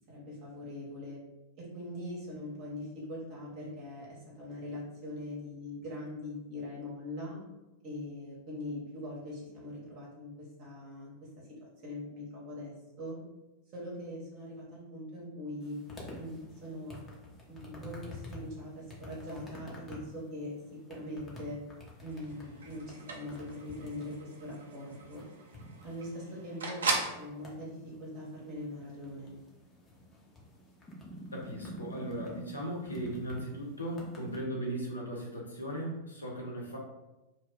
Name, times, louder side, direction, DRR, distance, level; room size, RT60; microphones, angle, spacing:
voice 1, 0.1-1.2 1.6-7.4 7.8-11.5 11.8-13.2 13.7-15.8 16.1-17.0 17.5-20.5 20.9-21.6 22.0-25.2 25.8-29.3, left 1 dB, 40° right, -4 dB, 0.9 m, -42 dB
sound 1, 15.6-34.4, equal, 20° left, 0.7 m, -49 dB
sound 2, 22.1-27.2, right 3 dB, 65° right, 0.4 m, -38 dB
voice 2, 31.3-36.8, right 1 dB, 80° left, -1 dB, 0.6 m, -37 dB
2.2 x 2.0 x 3.5 m, 1.0 s
figure-of-eight pair, 90°, 0 cm